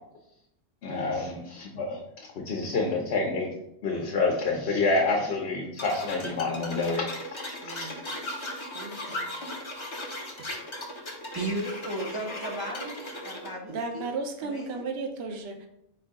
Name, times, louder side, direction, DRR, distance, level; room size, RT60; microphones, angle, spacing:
voice 1, 0.8-2.0 2.4-3.5 3.8-7.1 7.6-7.9, left 3 dB, 65° left, -1 dB, 0.9 m, -27 dB
sound 1, 5.8-13.5, left 1 dB, 30° left, 0.7 m, -37 dB
voice 2, 7.6-8.0 8.7-9.3 13.7-15.7, right 3 dB, 65° right, 3 dB, 0.9 m, -35 dB
voice 3, 11.3-14.1 14.4-14.9, right 1 dB, 25° right, -4 dB, 0.5 m, -35 dB
4.5 x 2.7 x 3.6 m, 0.78 s
omnidirectional pair, 1.2 m